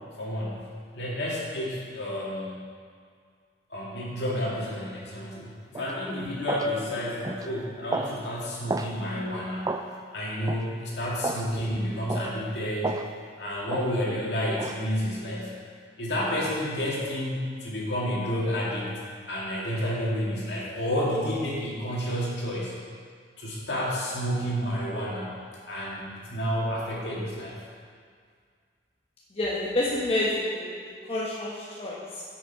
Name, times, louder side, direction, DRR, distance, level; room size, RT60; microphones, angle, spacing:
voice 1, 0.2-0.7 0.9-2.6 3.7-9.7 10.1-13.0 13.4-15.5 16.0-18.9 19.2-22.7 23.4-25.4 25.7-27.5, equal, 70° left, -5 dB, 2.2 m, -30 dB
sound 1, 5.7-5.9 6.5-6.7 7.2-7.5 7.9-8.1 8.7-8.9 9.6-9.9 10.5-10.7 11.2-11.5 12.1-12.3 12.8-13.1 13.7-13.9 14.6-14.8, right 3 dB, 20° right, 0.3 m, -31 dB
voice 2, 29.3-32.2, left 1 dB, 35° left, -7 dB, 1.1 m, -29 dB
9.6 x 6.3 x 4.7 m, 2.1 s
head